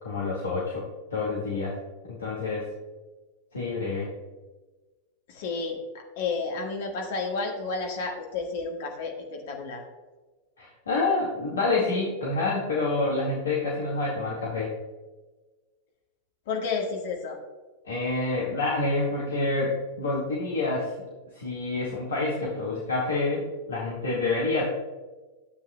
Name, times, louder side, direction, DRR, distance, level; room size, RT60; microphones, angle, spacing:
voice 1, 0.0-0.9 1.1-1.8 2.1-2.7 3.5-4.1 10.6-14.7 17.9-21.1 21.3-24.6, left 3 dB, 70° left, -5 dB, 1.8 m, -28 dB
voice 2, 5.3-9.9 16.5-17.4, left 4 dB, 55° left, 1 dB, 1.5 m, -31 dB
12.5 x 8.1 x 2.3 m, 1.3 s
figure-of-eight pair, 90°, 0 cm